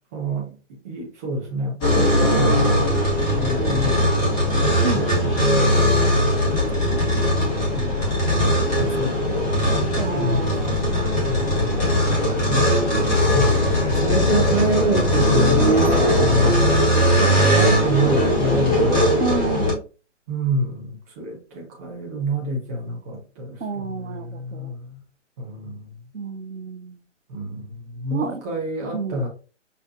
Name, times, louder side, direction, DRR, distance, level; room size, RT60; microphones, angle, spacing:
voice 1, 0.1-0.5 0.8-3.0 3.4-5.9 7.7-8.2 8.8-9.6 10.2-10.8 11.3-11.9 12.5-12.7 13.3-15.8 16.2-16.8 17.4-19.1 20.3-25.0 25.4-25.9 27.3-29.3, right 1 dB, 15° right, -1 dB, 0.6 m, -27 dB
sound 1, 1.8-19.7, equal, 15° left, 0.8 m, -19 dB
voice 2, 1.9-2.3 4.8-5.0 5.5-6.1 8.0-8.2 9.1-9.2 10.0-10.7 17.2-17.5 19.2-19.8 23.6-24.7 26.1-27.0 28.1-28.4 28.9-29.2, right 4 dB, 85° right, 8 dB, 0.6 m, -30 dB
5.5 x 2.2 x 2.6 m, 0.35 s
figure-of-eight pair, 130°, 36 cm